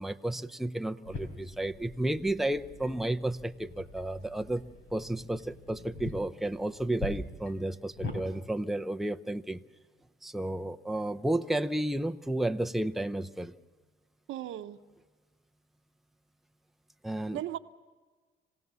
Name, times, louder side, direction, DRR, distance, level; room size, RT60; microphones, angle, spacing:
voice 1, 0.0-4.6 4.9-9.6 10.2-13.5 17.0-17.4, right 1 dB, ahead, 0.7 m, -32 dB
sound 1, 1.1-8.2, left 2 dB, 70° left, 5.0 m, -43 dB
voice 2, 14.3-14.8 17.3-17.6, right 12 dB, 85° right, 1.0 m, -36 dB
27.0 x 16.5 x 7.0 m
cardioid pair, 90°, 20 cm